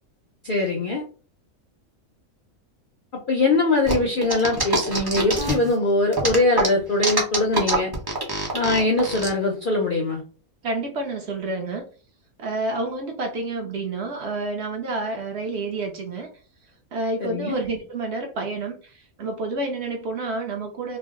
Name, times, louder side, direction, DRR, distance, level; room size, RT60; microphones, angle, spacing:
voice 1, 0.4-1.0 3.3-7.9 8.5-10.2 17.2-17.6, left 2 dB, 60° left, 0 dB, 0.5 m, -22 dB
sound 1, 3.9-5.7 6.1-9.3, right 2 dB, 25° right, 0.5 m, -25 dB
voice 2, 10.6-11.9 12.4-16.3 16.9-21.0, right 2 dB, 60° right, 3 dB, 0.7 m, -29 dB
2.5 x 2.0 x 3.5 m, 0.38 s
omnidirectional pair, 1.5 m